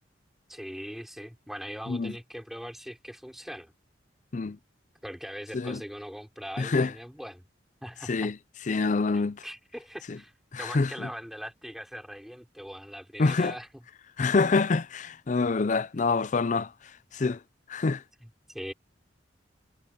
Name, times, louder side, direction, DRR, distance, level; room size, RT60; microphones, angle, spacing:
voice 1, 0.5-3.7 5.0-7.5 7.8-8.3 9.1-10.3 10.6-13.7 15.4-15.5 18.2-18.7, equal, ahead, 5.7 m, -41 dB
voice 2, 6.6-6.9 8.1-8.4 8.7-9.4 10.1-10.2 10.5-11.1 13.2-13.5 14.2-16.7 17.1-17.4 17.7-18.0, left 4 dB, 40° left, 0.5 m, -26 dB
head